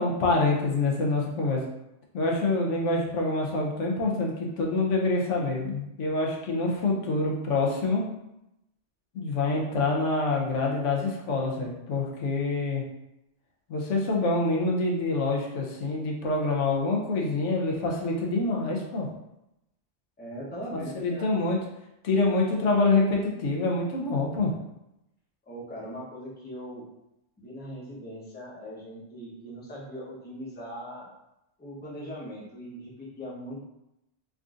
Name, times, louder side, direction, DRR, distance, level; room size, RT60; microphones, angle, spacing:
voice 1, 0.0-1.6 2.1-8.0 9.1-12.8 13.7-19.1 20.7-21.6 22.0-24.5, left 3 dB, 80° left, -1 dB, 1.0 m, -26 dB
voice 2, 20.2-21.3 25.5-26.9 27.4-31.1 31.6-33.6, equal, 10° left, -6 dB, 0.6 m, -40 dB
3.6 x 2.5 x 2.4 m, 0.87 s
omnidirectional pair, 1.2 m